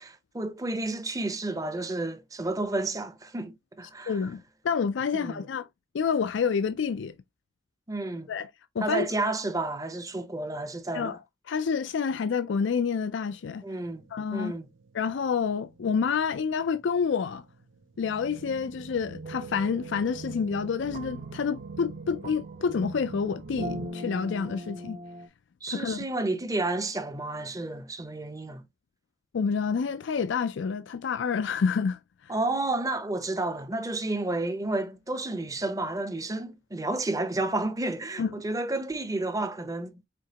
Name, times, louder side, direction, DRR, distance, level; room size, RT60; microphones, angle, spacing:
voice 1, 0.0-4.2 5.1-5.5 7.9-8.3 8.8-11.2 13.6-14.1 14.3-14.7 25.6-28.6 32.3-40.0, right 2 dB, 20° right, 0.7 m, -31 dB
voice 2, 4.1-5.7 5.9-7.1 8.3-8.5 8.8-9.1 10.9-11.2 11.5-13.6 14.1-14.5 14.9-17.4 18.0-25.0 25.7-26.1 29.3-32.0 38.2-38.3, left 6 dB, 70° left, 0.4 m, -28 dB
sound 1, 13.9-23.9, right 4 dB, 85° right, 0.6 m, -44 dB
sound 2, 19.2-25.3, equal, 45° right, 1.1 m, -41 dB
5.1 x 3.6 x 2.9 m
head